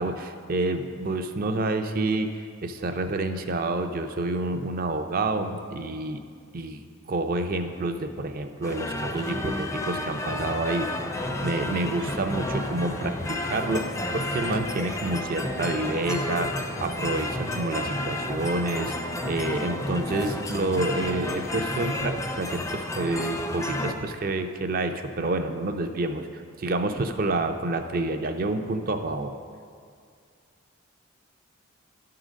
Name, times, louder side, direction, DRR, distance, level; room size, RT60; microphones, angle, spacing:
voice 1, 0.0-6.2 6.5-6.8 7.1-10.9 11.4-18.9 19.2-29.3, right 2 dB, 45° right, 7 dB, 0.5 m, -28 dB
sound 1, 8.6-23.9, left 1 dB, 15° left, 0.4 m, -31 dB
11.5 x 3.8 x 6.2 m, 2.2 s
head